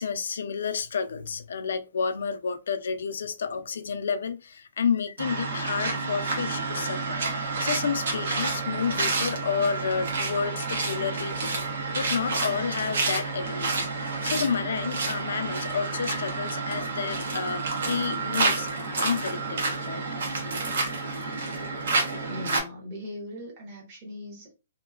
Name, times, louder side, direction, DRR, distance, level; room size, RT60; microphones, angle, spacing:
voice 1, 0.0-20.0 20.4-20.5, left 6 dB, 70° left, 0.4 m, -30 dB
sound 1, 5.2-22.6, right 3 dB, 60° right, 0.9 m, -29 dB
voice 2, 21.9-24.5, left 1 dB, 25° right, 1.0 m, -40 dB
2.9 x 2.1 x 2.3 m
hypercardioid pair, 175°, 0 cm